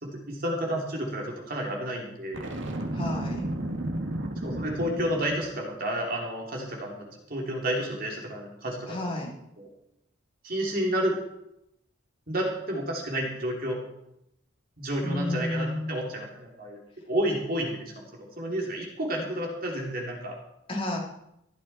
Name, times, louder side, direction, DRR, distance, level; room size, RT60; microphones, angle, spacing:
voice 1, 0.0-2.5 4.4-9.0 9.6-9.7 10.4-11.2 12.3-13.8 14.8-16.8 17.1-20.4, right 1 dB, 50° right, 0 dB, 3.1 m, -30 dB
Boom, 2.3-5.5, right 1 dB, 75° right, 2.1 m, -33 dB
voice 2, 2.9-3.5 8.9-9.3 15.0-15.9 20.7-21.0, left 1 dB, 30° left, -3 dB, 3.5 m, -31 dB
15.0 x 12.0 x 4.3 m, 0.82 s
head